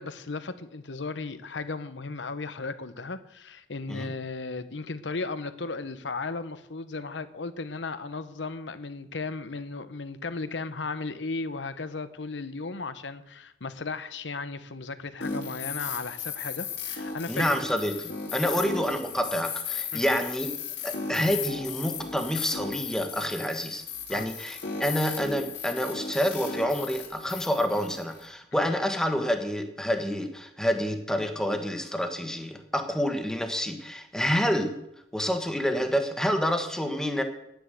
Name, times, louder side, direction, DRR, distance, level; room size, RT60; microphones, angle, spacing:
voice 1, 0.0-17.6 19.9-20.0 24.1-24.3, left 3 dB, 80° left, 12 dB, 0.9 m, -35 dB
sound 1, 15.2-28.3, left 6 dB, 65° left, 3.3 m, -36 dB
voice 2, 17.3-20.5 20.8-23.8 24.1-34.7 35.1-37.2, equal, 5° left, 5 dB, 1.4 m, -28 dB
10.0 x 10.0 x 7.6 m, 0.80 s
head